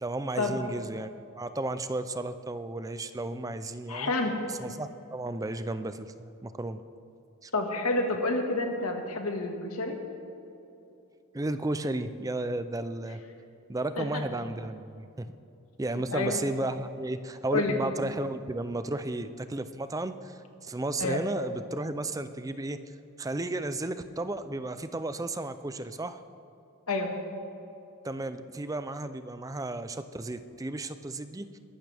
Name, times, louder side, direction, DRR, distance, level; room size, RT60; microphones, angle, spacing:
voice 1, 0.0-4.1 4.6-6.8 7.4-7.5 11.3-13.2 13.7-15.3 15.8-22.8 23.2-26.2 28.0-31.6, right 2 dB, 15° right, 11 dB, 0.4 m, -33 dB
voice 2, 3.9-4.4 7.5-10.0 14.0-14.2 16.1-16.4 17.5-17.8 21.0-21.2 26.9-27.1, left 2 dB, 85° left, 3 dB, 1.8 m, -29 dB
21.5 x 12.0 x 3.5 m, 2.8 s
head